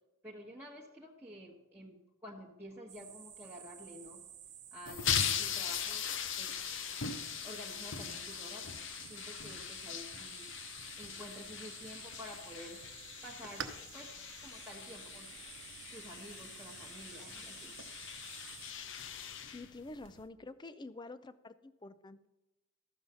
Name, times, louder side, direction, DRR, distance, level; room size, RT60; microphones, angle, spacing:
voice 1, 0.2-4.2 4.7-6.0 6.4-6.6 7.4-10.5 11.0-12.8 13.2-14.1 14.4-15.4 15.9-17.8, equal, 10° right, -5 dB, 1.3 m, -50 dB
sound 1, 2.9-18.7, right 9 dB, 35° right, 1.0 m, -53 dB
sound 2, 4.9-20.3, left 8 dB, 60° left, 0.8 m, -40 dB
sound 3, 13.3-20.2, right 6 dB, 65° right, 0.9 m, -54 dB
voice 2, 19.4-22.3, left 2 dB, 20° left, 13 dB, 0.5 m, -48 dB
13.5 x 7.3 x 5.5 m, 1.0 s
head